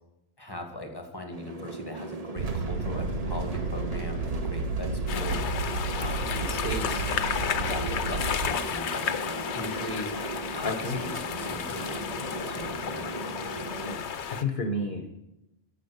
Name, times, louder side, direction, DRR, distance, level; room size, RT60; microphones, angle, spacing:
voice 1, 0.4-5.6 5.9-7.1 7.5-10.1 10.5-13.1, equal, 20° left, 3 dB, 1.7 m, -39 dB
sound 1, 1.3-14.0, right 3 dB, 35° right, 1.0 m, -38 dB
sound 2, 2.4-8.5, right 3 dB, 70° right, 1.1 m, -32 dB
sound 3, 5.1-14.4, left 7 dB, 85° left, 1.1 m, -32 dB
voice 2, 10.6-11.1 13.8-15.1, left 2 dB, 50° left, 6 dB, 1.2 m, -31 dB
14.0 x 7.5 x 6.7 m, 0.93 s
omnidirectional pair, 1.1 m